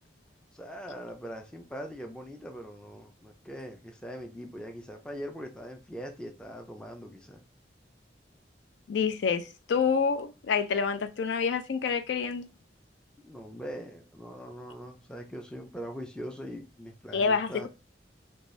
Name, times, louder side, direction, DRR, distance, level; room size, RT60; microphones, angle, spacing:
voice 1, 0.5-7.4 13.2-17.7, equal, 5° left, 0.4 m, -41 dB
voice 2, 8.9-12.5 17.1-17.7, left 5 dB, 80° left, 0.4 m, -27 dB
2.6 x 2.3 x 3.1 m
head